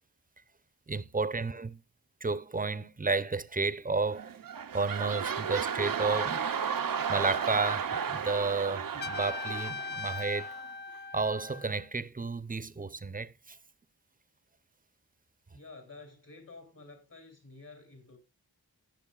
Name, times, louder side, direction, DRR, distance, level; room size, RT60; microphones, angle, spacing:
voice 1, 0.9-1.8 2.2-4.3 4.7-6.4 7.1-10.5 11.1-13.6, right 3 dB, 25° right, 0.7 m, -32 dB
sound 1, 4.1-10.7 11.2-11.3, right 7 dB, 65° right, 0.6 m, -34 dB
Trumpet, 9.0-11.8, left 4 dB, 30° left, 0.4 m, -39 dB
voice 2, 15.5-18.2, left 3 dB, 60° left, 3.2 m, -51 dB
18.5 x 6.7 x 2.4 m
wide cardioid pair, 45°, 37 cm